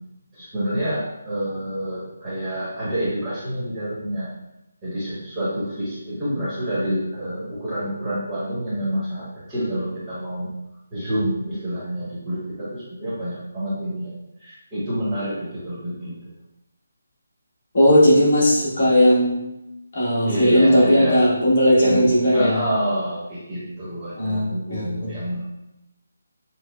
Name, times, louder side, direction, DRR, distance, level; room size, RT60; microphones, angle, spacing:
voice 1, 0.3-4.3 4.8-10.5 10.9-14.1 14.4-16.2 20.3-21.2 21.8-25.4, equal, 10° right, -11 dB, 1.0 m, -28 dB
voice 2, 17.7-19.4 19.9-22.6 24.2-25.1, equal, 45° left, -7 dB, 1.3 m, -17 dB
6.1 x 2.1 x 2.3 m, 0.90 s
hypercardioid pair, 170°, 0 cm